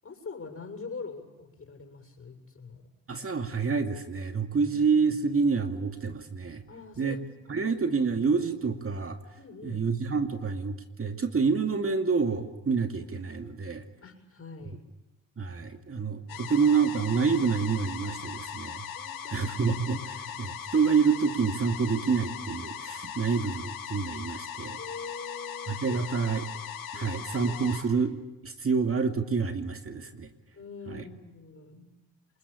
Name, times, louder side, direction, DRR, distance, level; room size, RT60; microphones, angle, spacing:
voice 1, 0.0-2.9 4.6-4.7 6.7-7.2 7.5-7.6 9.4-9.8 14.0-14.8 16.3-16.5 19.0-19.5 20.3-20.4 24.7-26.4 26.9-27.2 30.5-31.9, left 4 dB, 40° left, 6 dB, 6.9 m, -44 dB
voice 2, 3.1-6.6 7.0-7.2 7.5-9.2 9.6-13.8 15.4-18.8 19.3-24.8 25.7-26.5 26.9-28.2 28.4-30.3 30.9-31.0, right 5 dB, 40° right, 6 dB, 2.5 m, -27 dB
sound 1, 16.3-27.8, left 8 dB, 80° left, 6.0 m, -39 dB
28.0 x 21.5 x 8.7 m, 1.0 s
supercardioid pair, 65°, 36 cm